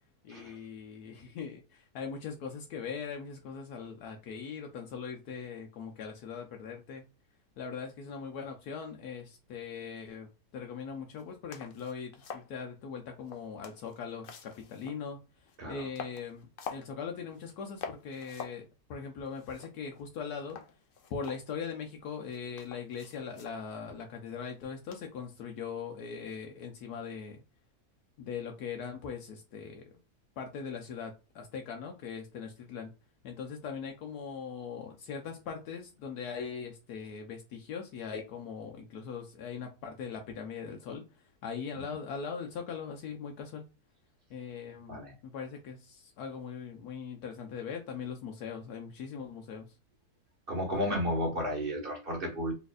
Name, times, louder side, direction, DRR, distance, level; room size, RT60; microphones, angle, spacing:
voice 1, 0.2-7.0 7.6-15.2 15.7-20.6 21.1-27.4 28.2-29.9 30.4-32.9 33.2-43.6 44.3-49.7, left 6 dB, 85° left, 1.2 m, -40 dB
sound 1, 11.2-11.3 11.5-12.5 13.2-15.1 15.5-15.6 15.9-16.9 17.3-17.5 17.8-18.6 18.9-19.0 19.3-20.1 20.5-21.8 22.3-23.6 24.9-25.2, left 6 dB, 60° left, 0.6 m, -46 dB
voice 2, 50.5-52.5, equal, 35° right, 1.6 m, -33 dB
4.1 x 3.3 x 2.4 m
omnidirectional pair, 1.7 m